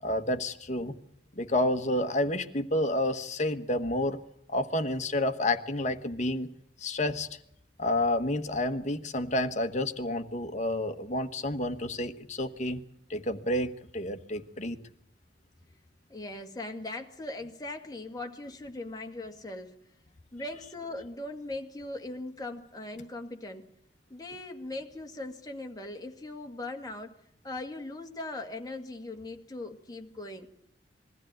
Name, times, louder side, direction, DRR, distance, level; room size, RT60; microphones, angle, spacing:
voice 1, 0.0-0.9 1.4-4.2 4.5-6.5 6.8-7.3 7.8-12.8 13.1-14.8, left 1 dB, 40° left, 8 dB, 1.3 m, -29 dB
voice 2, 16.1-19.7 20.3-23.7 24.1-27.2 27.4-30.5, left 2 dB, 20° left, 3 dB, 1.9 m, -39 dB
22.0 x 15.0 x 9.1 m, 0.72 s
head